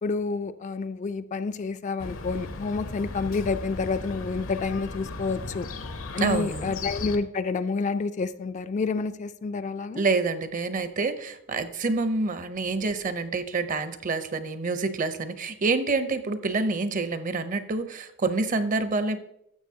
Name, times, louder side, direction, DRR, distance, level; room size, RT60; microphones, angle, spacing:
voice 1, 0.0-5.7 6.1-10.0, left 4 dB, 35° left, 11 dB, 0.3 m, -29 dB
Chirp tweet, 2.0-7.2, left 3 dB, 80° left, 0.8 m, -36 dB
voice 2, 6.2-6.7 10.0-19.2, right 3 dB, 40° right, 11 dB, 0.6 m, -27 dB
12.5 x 7.0 x 2.7 m, 0.77 s
head